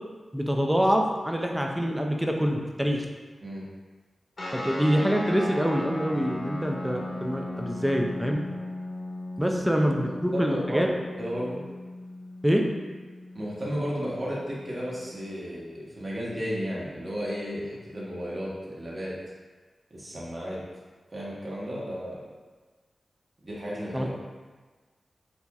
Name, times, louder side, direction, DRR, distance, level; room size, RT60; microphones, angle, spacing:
voice 1, 0.3-3.1 4.5-8.4 9.4-10.9 12.4-12.6 23.9-24.1, equal, 5° right, 1 dB, 0.4 m, -25 dB
sound 1, 4.4-15.3, left 1 dB, 55° left, 0.9 m, -37 dB
voice 2, 10.1-11.6 13.3-19.1 19.9-20.6 21.1-22.2 23.4-24.1, equal, 40° right, -6 dB, 1.1 m, -33 dB
4.0 x 2.9 x 2.3 m, 1.4 s
cardioid pair, 65°, 0 cm